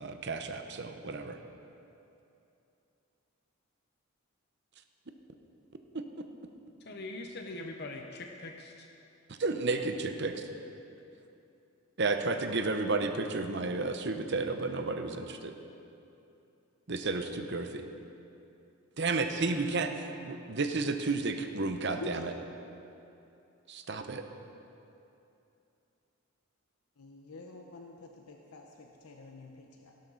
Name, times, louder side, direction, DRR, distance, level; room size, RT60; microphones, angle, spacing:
voice 1, 0.0-1.4 5.9-6.0 9.3-10.5 12.0-15.5 16.9-17.8 19.0-22.3 23.7-24.2, right 3 dB, 50° right, 6 dB, 0.8 m, -32 dB
voice 2, 6.8-8.9, left 2 dB, 50° left, 2 dB, 0.8 m, -42 dB
voice 3, 21.9-22.2 27.0-29.9, left 3 dB, 85° left, 2 dB, 0.9 m, -47 dB
17.0 x 12.0 x 4.0 m, 2.8 s
head